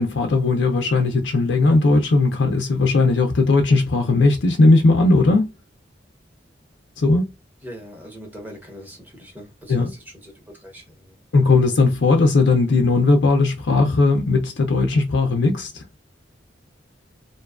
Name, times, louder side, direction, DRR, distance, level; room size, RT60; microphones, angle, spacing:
voice 1, 0.0-5.5 7.0-7.3 9.7-9.9 11.3-15.8, left 3 dB, 70° left, 0.5 m, -17 dB
voice 2, 7.6-11.2 11.6-11.7, equal, 10° right, 0.8 m, -41 dB
2.5 x 2.2 x 2.3 m
head